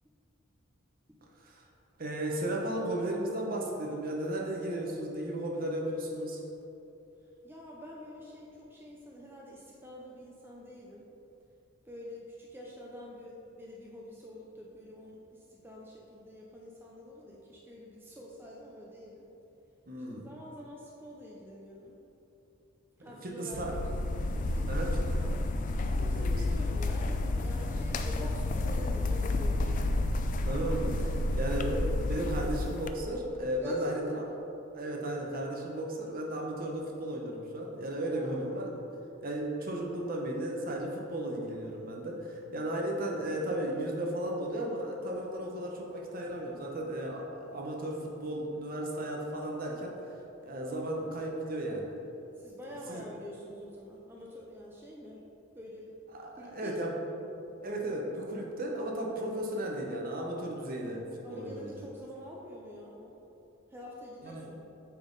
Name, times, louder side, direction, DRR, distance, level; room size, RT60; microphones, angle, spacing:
voice 1, 2.0-6.4 19.9-20.3 23.2-23.8 24.7-25.2 26.1-26.4 30.5-34.2 34.7-38.8 39.2-49.9 50.4-51.9 52.9-53.0 56.1-57.0 57.6-61.8 64.2-64.5, right 1 dB, 45° right, -1 dB, 0.9 m, -35 dB
voice 2, 7.4-11.1 11.9-19.3 20.2-22.0 23.0-23.8 24.5-24.7 25.2-25.3 26.0-29.9 33.6-34.2 38.2-38.4 52.4-55.2 55.5-55.9 56.4-57.1 61.2-63.2 63.7-64.6, left 1 dB, 10° right, -3 dB, 0.5 m, -46 dB
sound 1, 23.5-32.9, left 2 dB, 40° left, 0.3 m, -30 dB
8.5 x 3.6 x 4.0 m, 2.9 s
head